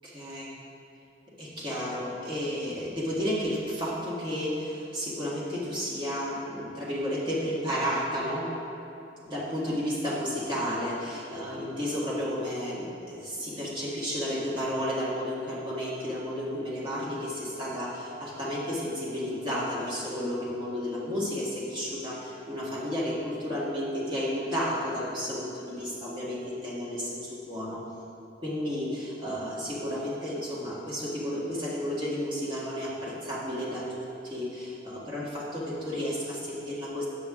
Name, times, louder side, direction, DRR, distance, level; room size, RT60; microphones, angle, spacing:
voice 1, 0.0-0.5 1.4-8.5 9.2-27.8 28.4-37.1, equal, 30° right, -7 dB, 1.7 m, -32 dB
8.6 x 8.0 x 3.6 m, 2.7 s
head